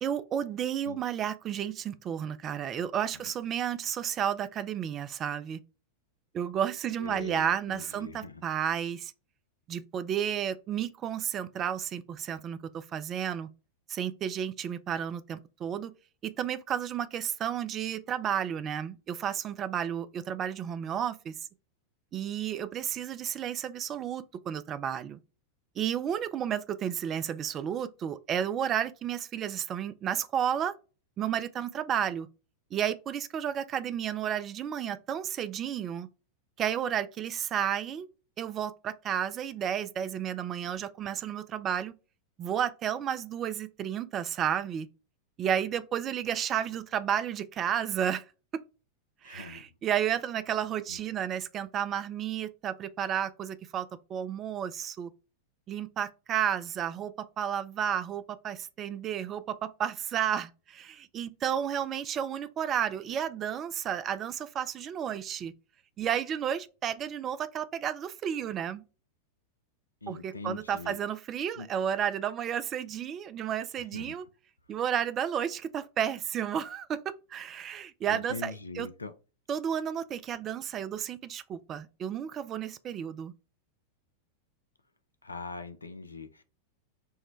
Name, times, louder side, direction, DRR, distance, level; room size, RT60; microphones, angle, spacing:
voice 1, 0.0-5.6 6.3-9.1 9.7-13.5 13.9-15.9 16.2-21.3 22.1-25.2 25.8-30.7 31.2-32.3 32.7-36.1 36.6-38.1 38.4-41.9 42.4-44.9 45.4-48.2 49.2-55.1 55.7-65.5 66.0-68.8 70.1-74.2 74.7-78.9 79.5-83.3, right 9 dB, 30° right, 0.3 m, -32 dB
voice 2, 7.0-8.4 49.2-49.6 50.9-51.0 70.0-71.0 71.6-71.7 73.8-74.2 78.1-79.1 85.2-86.4, left 3 dB, 80° left, 0.5 m, -42 dB
4.6 x 2.2 x 3.1 m
figure-of-eight pair, 90°, 0 cm